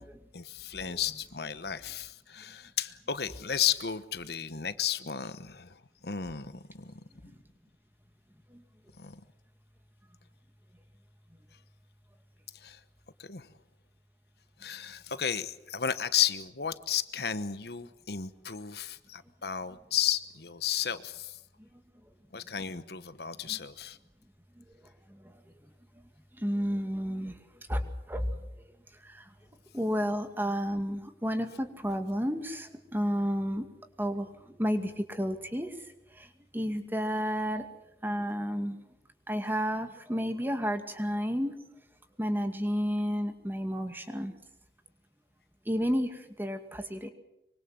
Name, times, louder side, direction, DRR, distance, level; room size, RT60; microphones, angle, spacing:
voice 1, 0.3-6.9 9.0-9.2 12.5-12.8 13.2-13.5 14.6-21.4 22.3-24.0, left 9 dB, 65° left, 13 dB, 1.1 m, -33 dB
voice 2, 26.4-27.4 27.7-28.3 29.0-29.3 29.7-33.7 34.0-35.7 36.2-36.3 36.5-37.6 38.0-38.8 39.3-41.5 42.2-44.3 45.7-47.1, equal, 10° right, 7 dB, 2.2 m, -31 dB
25.0 x 24.5 x 7.7 m, 0.82 s
head